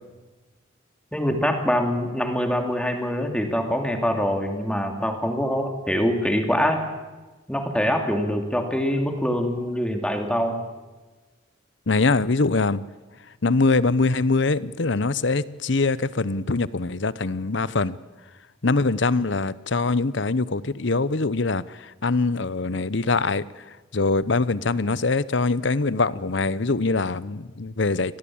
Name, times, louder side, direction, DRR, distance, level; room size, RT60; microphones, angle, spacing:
voice 1, 1.1-6.8 7.5-10.6, equal, 5° left, 4 dB, 2.8 m, -24 dB
voice 2, 11.9-12.8 13.4-18.0 18.6-21.6 22.0-23.4 23.9-28.2, left 3 dB, 60° left, 18 dB, 0.8 m, -23 dB
25.5 x 18.5 x 8.7 m, 1.2 s
head